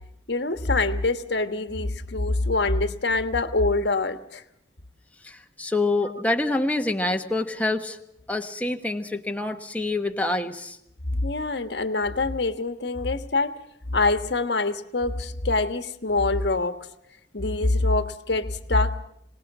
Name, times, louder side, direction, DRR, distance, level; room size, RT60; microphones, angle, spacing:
voice 1, 0.3-4.4 11.2-13.6 13.9-16.8 17.3-19.0, left 2 dB, 70° left, 9 dB, 1.3 m, -25 dB
voice 2, 5.2-8.0 8.3-10.8, left 2 dB, 10° left, 5 dB, 1.3 m, -26 dB
25.5 x 19.0 x 6.0 m, 0.77 s
head